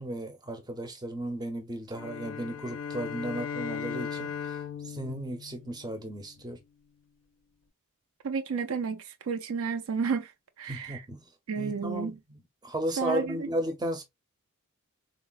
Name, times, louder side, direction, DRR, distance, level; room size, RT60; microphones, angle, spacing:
voice 1, 0.0-4.6 4.8-6.6 10.7-11.2 11.6-14.0, right 1 dB, 20° right, 0.5 m, -35 dB
sound 1, 1.9-6.4, left 7 dB, 65° left, 0.4 m, -38 dB
voice 2, 8.2-10.3 10.6-11.0 11.5-12.1 13.0-13.5, right 5 dB, 70° right, 0.4 m, -31 dB
3.8 x 2.0 x 2.3 m
head